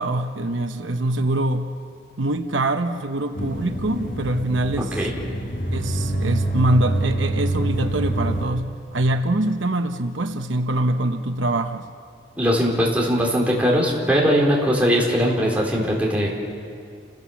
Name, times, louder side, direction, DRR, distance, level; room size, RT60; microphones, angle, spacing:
voice 1, 0.0-1.7 2.2-5.0 5.7-11.9, right 1 dB, 80° right, 7 dB, 0.9 m, -24 dB
sound 1, 3.3-8.5, right 1 dB, 45° left, 4.2 m, -26 dB
voice 2, 12.4-16.3, equal, 5° right, -4 dB, 3.8 m, -20 dB
29.5 x 16.5 x 7.1 m, 2.3 s
head